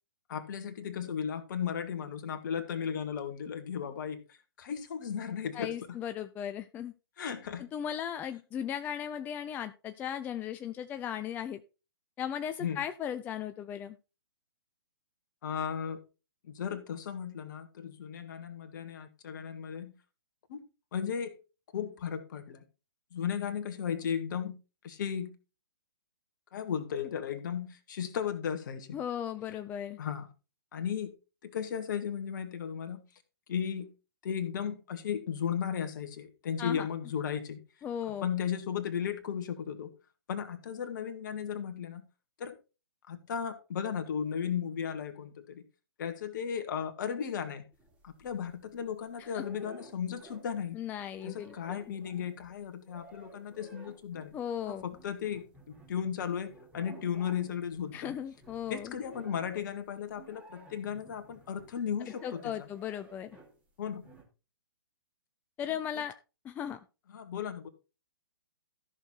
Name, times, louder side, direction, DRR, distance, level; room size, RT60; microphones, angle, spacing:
voice 1, 0.3-5.7 7.2-7.6 12.6-12.8 15.4-16.0 16.5-19.9 20.5-20.6 20.9-21.3 21.7-22.6 23.1-24.6 24.8-25.3 26.5-29.0 30.0-30.3 30.7-31.1 31.4-33.0 33.5-33.9 34.2-37.6 38.2-39.9 40.3-42.0 42.4-42.6 43.1-45.6 46.0-47.6 48.0-50.8 51.2-54.3 54.7-58.1 58.7-62.7 63.8-64.0 67.1-67.7, left 8 dB, 50° left, 1.9 m, -35 dB
voice 2, 5.5-6.9 7.6-11.6 12.2-14.0 28.9-30.0 36.6-36.9 37.8-38.3 49.2-49.4 50.7-51.8 54.3-54.8 57.9-58.9 62.2-63.3 65.6-66.2 66.4-66.8, left 9 dB, 15° left, 0.4 m, -37 dB
sound 1, 47.7-48.8 49.2-50.7 50.9-63.6 64.0-64.2, right 2 dB, 10° right, 3.1 m, -55 dB
13.5 x 6.4 x 4.2 m
figure-of-eight pair, 125°, 13 cm